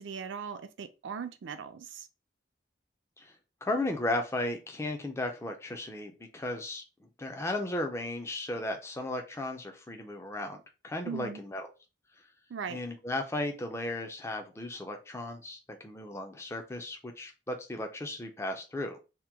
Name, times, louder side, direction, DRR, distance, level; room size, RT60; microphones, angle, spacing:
voice 1, 0.0-2.1 11.0-11.4 12.5-12.8, right 6 dB, 75° right, 0.4 m, -39 dB
voice 2, 3.6-6.8 7.2-11.7 12.7-19.0, left 1 dB, 15° left, 0.4 m, -35 dB
2.9 x 2.2 x 3.4 m
head